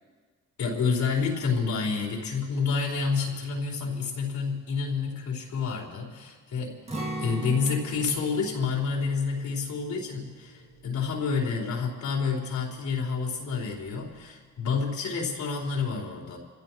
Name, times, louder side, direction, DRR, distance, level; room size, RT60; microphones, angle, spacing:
voice 1, 0.6-6.8 7.2-16.4, left 5 dB, 70° left, -2 dB, 4.3 m, -29 dB
Acoustic guitar, 6.9-12.8 13.1-13.3 13.7-14.2, right 1 dB, 20° right, 2.2 m, -40 dB
28.0 x 16.0 x 3.1 m, 1.5 s
cardioid pair, 90°, 30 cm